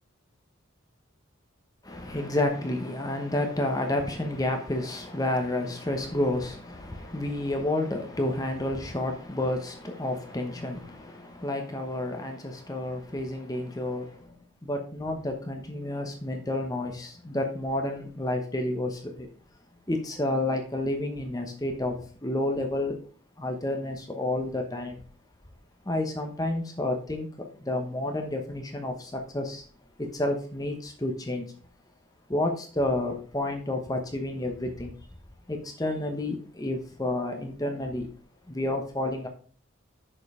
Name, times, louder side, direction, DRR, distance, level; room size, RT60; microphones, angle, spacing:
voice 1, 1.8-14.3 14.6-19.3 19.9-22.0 22.2-23.0 23.4-25.0 25.8-29.6 30.0-31.5 32.3-34.9 35.5-38.1 38.5-39.3, left 1 dB, 20° left, 4 dB, 1.0 m, -30 dB
6.6 x 5.3 x 4.9 m, 0.41 s
head